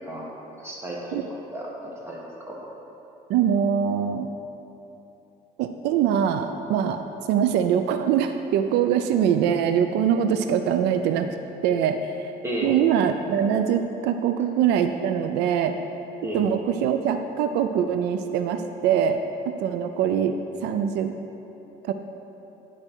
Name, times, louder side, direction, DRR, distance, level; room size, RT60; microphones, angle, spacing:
voice 1, 0.6-1.2 1.5-2.6 12.4-12.7 16.2-16.4, right 1 dB, 15° right, -4 dB, 1.7 m, -33 dB
voice 2, 3.3-4.3 5.6-7.0 7.3-11.3 11.6-12.3 12.6-15.7 16.3-21.1 21.8-21.9, right 8 dB, 90° right, 7 dB, 0.4 m, -23 dB
11.0 x 4.3 x 4.5 m, 3.0 s
cardioid pair, 110°, 17 cm